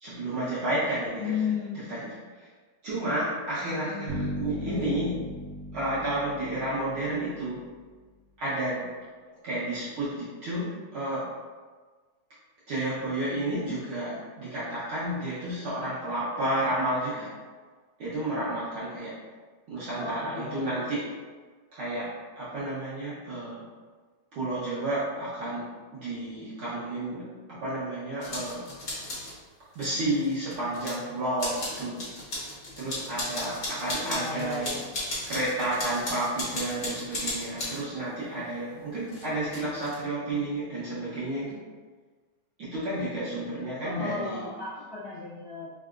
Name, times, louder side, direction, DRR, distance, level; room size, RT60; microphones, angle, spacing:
voice 1, 0.0-1.4 1.9-2.1 2.8-5.1 5.7-7.6 8.4-8.8 9.4-11.2 12.7-17.3 18.0-19.1 19.7-21.1 21.7-22.1 22.4-23.6 24.3-27.2 27.5-28.6 29.7-32.0 32.8-34.8 35.3-41.6 42.6-44.4, right 1 dB, 65° right, -10 dB, 1.3 m, -31 dB
voice 2, 1.1-1.9 3.7-4.2 4.4-4.8 20.0-21.0 34.0-35.1 43.8-45.7, left 6 dB, 80° left, -10 dB, 1.0 m, -35 dB
sound 1, 4.1-7.8, equal, 85° right, 1.4 m, -38 dB
sound 2, 28.2-29.3 29.7-30.9 31.4-37.8 39.1-40.0, left 1 dB, 55° left, 0.9 m, -36 dB
4.7 x 3.3 x 2.5 m, 1.4 s
omnidirectional pair, 3.3 m